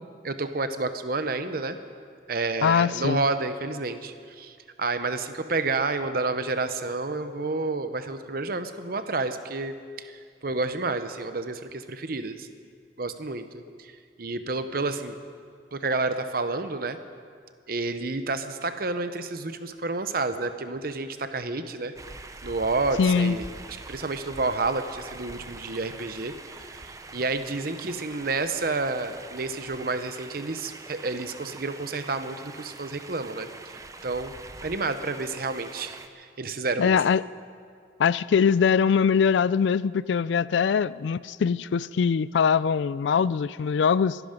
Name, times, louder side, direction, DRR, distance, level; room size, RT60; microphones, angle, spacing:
voice 1, 0.2-1.8 2.3-12.5 13.0-15.2 15.7-17.0 17.7-21.9 22.4-23.5 23.9-34.3 34.6-37.0, right 3 dB, 50° right, 9 dB, 0.8 m, -30 dB
voice 2, 2.6-3.2 23.0-23.4 36.8-37.2 38.0-44.2, left 6 dB, 70° left, 19 dB, 0.3 m, -22 dB
sound 1, 22.0-36.1, right 3 dB, 15° right, 0.6 m, -44 dB
24.0 x 11.0 x 5.2 m, 2.2 s
head